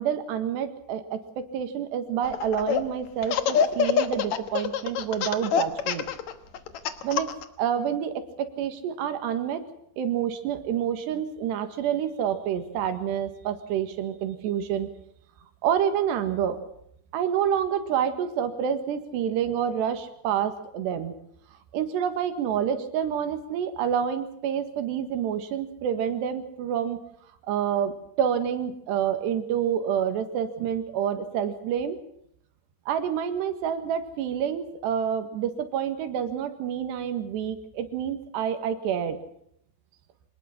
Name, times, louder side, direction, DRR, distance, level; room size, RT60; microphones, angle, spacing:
voice 1, 0.0-6.0 7.0-7.3 7.6-9.6 10.0-14.9 15.6-16.6 17.1-21.1 21.7-27.0 27.5-32.0 32.9-39.2, right 8 dB, 85° right, 9 dB, 3.9 m, -28 dB
Laughter, 2.2-2.8 3.2-7.4, left 8 dB, 65° left, 1.9 m, -25 dB
25.0 x 19.5 x 5.9 m, 0.73 s
omnidirectional pair, 4.8 m